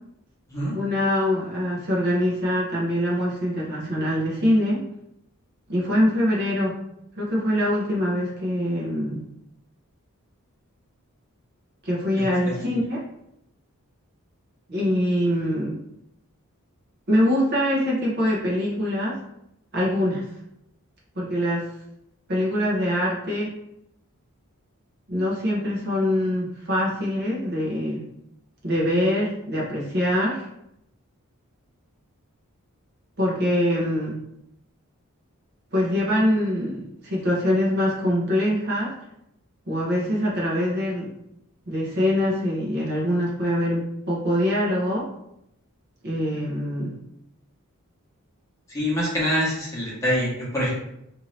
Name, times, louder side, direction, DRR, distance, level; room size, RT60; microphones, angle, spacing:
voice 1, 0.7-4.8 5.7-6.8 7.2-9.2 11.8-13.0 14.7-15.8 17.1-19.2 19.7-20.3 21.2-21.7 22.3-23.5 25.1-28.0 28.6-30.5 33.2-34.2 35.7-38.9 39.7-41.1 41.7-45.1 46.0-47.0, equal, 45° right, -4 dB, 0.7 m, -24 dB
voice 2, 48.7-50.8, equal, 15° left, -7 dB, 1.0 m, -25 dB
2.6 x 2.6 x 3.1 m, 0.81 s
head